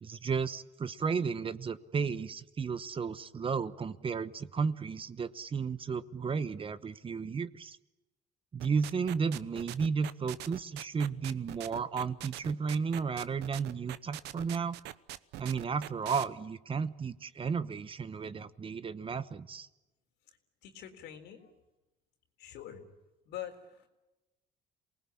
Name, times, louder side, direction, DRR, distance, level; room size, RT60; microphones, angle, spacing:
voice 1, 0.0-7.8 8.5-14.8 15.4-19.7, right 5 dB, 30° right, 14 dB, 1.1 m, -33 dB
sound 1, 8.6-16.2, right 15 dB, 85° right, 1.0 m, -42 dB
voice 2, 20.6-21.5 22.4-22.8 23.3-23.9, left 10 dB, 85° left, 5 dB, 3.8 m, -44 dB
28.0 x 19.5 x 8.7 m, 1.0 s
cardioid pair, 110°, 17 cm